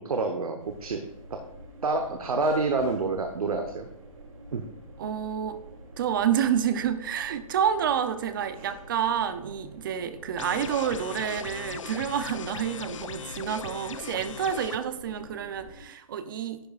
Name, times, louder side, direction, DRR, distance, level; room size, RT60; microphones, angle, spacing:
voice 1, 0.0-1.0 1.3-1.4 1.8-3.9 4.5-4.6, right 3 dB, 85° right, 5 dB, 1.0 m, -28 dB
sound 1, 0.6-15.8, right 2 dB, 70° right, 2.9 m, -47 dB
voice 2, 5.0-5.6 6.0-16.6, right 8 dB, 35° right, 11 dB, 0.6 m, -29 dB
sound 2, 10.4-14.8, left 8 dB, 60° left, 0.5 m, -39 dB
10.5 x 9.0 x 2.4 m, 0.82 s
hypercardioid pair, 160°, 18 cm